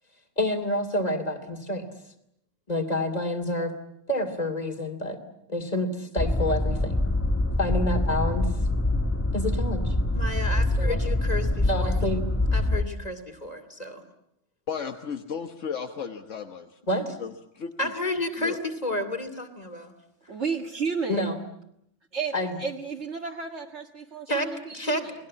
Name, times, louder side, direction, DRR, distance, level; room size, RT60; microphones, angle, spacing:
voice 1, 0.4-1.9 2.7-3.7 4.1-5.2 5.5-7.0 7.6-8.5 9.3-12.2 12.5-14.0 16.9-17.2 17.8-19.9 21.1-21.4 22.3-22.5 24.3-25.0, left 1 dB, 30° left, 8 dB, 2.8 m, -29 dB
sound 1, 6.2-12.8, left 1 dB, 10° left, 1.1 m, -25 dB
voice 2, 14.7-16.8 17.2-17.9 18.4-18.6, left 6 dB, 80° left, 5 dB, 1.6 m, -35 dB
voice 3, 20.3-21.3 22.1-25.1, right 5 dB, 65° right, 0 dB, 2.0 m, -32 dB
29.5 x 20.0 x 8.5 m, 0.77 s
omnidirectional pair, 1.3 m